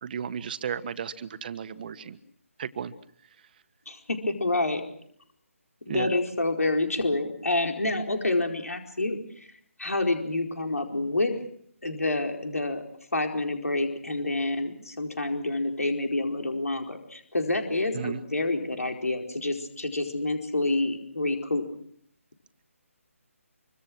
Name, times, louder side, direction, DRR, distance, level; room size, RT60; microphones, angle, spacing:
voice 1, 0.0-2.2 2.6-2.9 5.9-6.1 17.9-18.2, right 7 dB, 40° right, 13 dB, 1.5 m, -34 dB
voice 2, 3.9-4.8 5.9-9.5 9.8-11.3 11.8-12.8 13.1-21.6, left 2 dB, 85° left, 4 dB, 4.6 m, -28 dB
26.0 x 25.0 x 6.2 m, 0.64 s
figure-of-eight pair, 155°, 8 cm